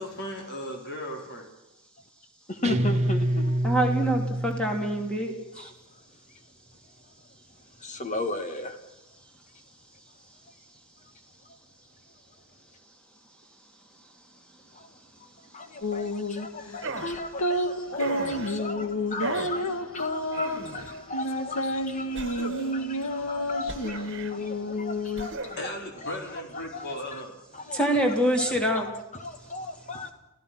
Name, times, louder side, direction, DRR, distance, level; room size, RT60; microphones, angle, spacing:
voice 1, 0.0-1.5 25.6-27.3, equal, 50° left, 2 dB, 4.5 m, -36 dB
voice 2, 2.5-3.6 5.6-5.7 7.8-8.8 14.7-14.9 15.5-25.7 26.0-26.2 26.5-27.2 27.5-27.8 28.4-30.1, left 2 dB, 35° left, 8 dB, 1.9 m, -36 dB
Guitar, 2.6-5.2, right 1 dB, 30° right, 1.4 m, -27 dB
voice 3, 3.6-5.7 27.7-28.9, right 1 dB, 5° left, 1 dB, 3.3 m, -25 dB
sound 1, 15.8-25.6, left 1 dB, 85° left, 1.6 m, -30 dB
sound 2, 16.8-17.2 18.0-18.6 19.2-19.6 20.3-21.0 22.2-22.9 23.7-24.3 25.2-25.7, right 3 dB, 55° right, 1.7 m, -36 dB
29.5 x 15.5 x 6.1 m, 0.94 s
head